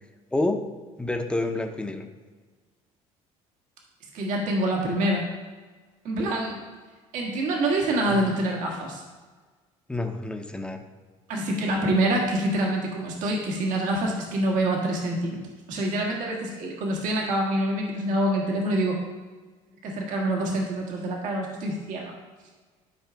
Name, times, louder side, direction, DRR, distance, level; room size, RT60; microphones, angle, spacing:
voice 1, 1.0-2.0 8.1-8.3 9.9-10.8, left 2 dB, 5° left, 5 dB, 0.8 m, -28 dB
voice 2, 4.1-5.3 6.0-6.6 7.1-9.0 11.3-15.4 15.7-19.0 19.8-22.1, right 1 dB, 70° right, -1 dB, 1.6 m, -26 dB
12.0 x 4.8 x 3.5 m, 1.4 s
cardioid pair, 100°, 14 cm